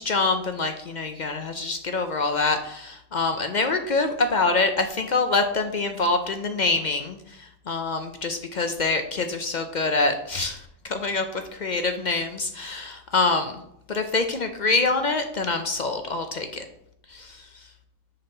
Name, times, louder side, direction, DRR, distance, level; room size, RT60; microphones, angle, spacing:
voice 1, 0.0-13.6 13.9-16.6 17.1-17.6, left 3 dB, 60° left, 7 dB, 0.4 m, -25 dB
6.6 x 4.1 x 5.4 m, 0.75 s
omnidirectional pair, 1.4 m